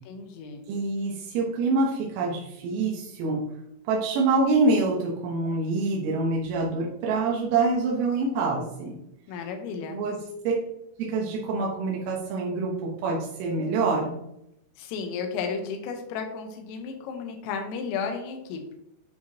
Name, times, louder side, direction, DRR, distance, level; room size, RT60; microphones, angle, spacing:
voice 1, 0.1-0.7 9.3-10.0 14.8-18.7, left 5 dB, 85° left, 4 dB, 3.6 m, -33 dB
voice 2, 0.7-3.4 3.9-8.9 9.9-10.2 10.5-10.6 11.0-14.1, right 3 dB, 90° right, -2 dB, 3.7 m, -26 dB
10.5 x 4.8 x 2.8 m, 0.80 s
omnidirectional pair, 5.8 m